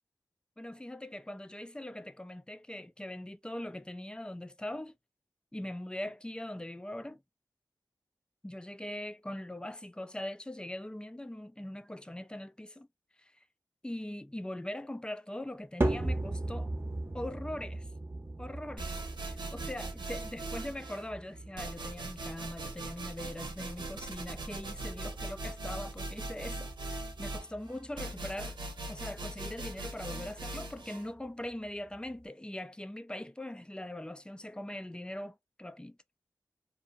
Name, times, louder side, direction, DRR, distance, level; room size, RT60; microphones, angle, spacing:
voice 1, 0.6-5.0 5.5-7.2 8.4-12.9 13.2-13.3 13.8-16.7 17.1-17.9 18.4-28.6 28.9-36.0, left 1 dB, 10° left, 0.4 m, -41 dB
sound 1, 15.8-32.2, right 2 dB, 30° right, 0.8 m, -40 dB
sound 2, 18.8-21.1 21.6-31.1, right 2 dB, 75° right, 0.8 m, -40 dB
2.6 x 2.6 x 2.4 m
wide cardioid pair, 65°, 8 cm